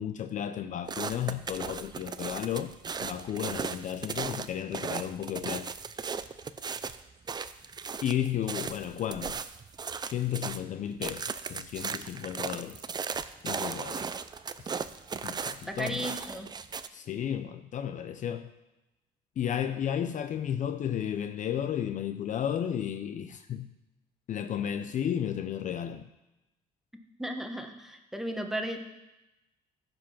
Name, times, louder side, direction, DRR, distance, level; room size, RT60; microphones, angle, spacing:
voice 1, 0.0-2.7 3.0-5.7 8.0-9.4 10.0-12.8 13.4-14.1 15.2-16.0 16.9-18.5 19.4-23.7 24.3-26.1, left 10 dB, 50° left, 0.6 m, -33 dB
sound 1, 0.9-10.6 11.0-16.9, right 5 dB, 25° right, 0.5 m, -37 dB
voice 2, 15.7-16.5 27.2-28.8, equal, ahead, 1.2 m, -35 dB
15.0 x 5.3 x 5.7 m
cardioid pair, 110°, 17 cm